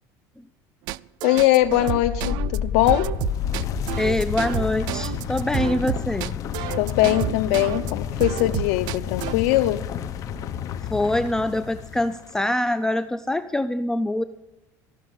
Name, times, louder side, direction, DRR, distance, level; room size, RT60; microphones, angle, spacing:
sound 1, 0.9-7.9 8.2-9.3, right 17 dB, 65° right, 0.4 m, -30 dB
voice 1, 1.2-3.1 6.8-9.8, left 15 dB, 85° left, 8 dB, 0.6 m, -21 dB
sound 2, 1.5-12.3, left 8 dB, 45° left, 0.9 m, -30 dB
voice 2, 4.0-6.4 10.9-14.2, left 1 dB, 5° left, 12 dB, 0.4 m, -24 dB
14.5 x 6.4 x 9.8 m, 0.93 s
cardioid pair, 145°, 8 cm